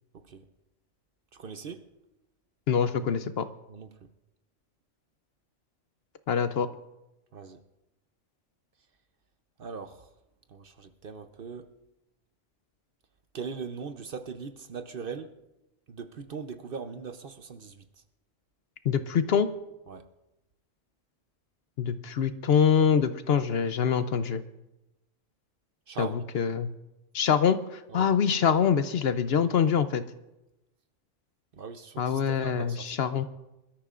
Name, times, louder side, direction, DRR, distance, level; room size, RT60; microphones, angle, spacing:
voice 1, 0.1-0.4 1.3-1.8 3.7-3.9 7.3-7.6 9.6-10.1 10.5-11.7 13.3-15.3 15.9-17.8 19.9-20.1 25.9-26.2 27.9-28.1 31.5-33.0, right 5 dB, 50° right, 8 dB, 0.8 m, -40 dB
voice 2, 2.7-3.5 6.3-6.7 18.9-19.5 21.8-24.4 26.0-26.7 27.1-30.0 32.0-33.3, left 7 dB, 60° left, 11 dB, 0.8 m, -25 dB
26.0 x 13.0 x 2.5 m, 0.96 s
omnidirectional pair, 1.3 m